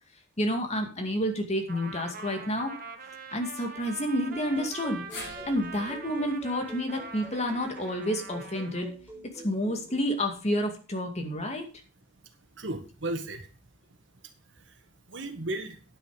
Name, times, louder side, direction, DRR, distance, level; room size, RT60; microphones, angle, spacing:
voice 1, 0.4-2.7 3.3-5.0 5.5-8.9 9.4-11.7, equal, 35° left, 4 dB, 2.3 m, -29 dB
Trumpet, 1.7-8.9, right 4 dB, 45° right, 1.5 m, -43 dB
sound 1, 4.3-10.1, equal, 10° right, 4.1 m, -48 dB
sound 2, 5.1-9.4 9.7-9.8 11.0-11.1, left 1 dB, 65° left, 6.6 m, -48 dB
voice 2, 12.2-13.5 14.2-15.8, right 2 dB, 65° right, 7 dB, 1.8 m, -36 dB
10.0 x 9.4 x 5.0 m, 0.35 s
head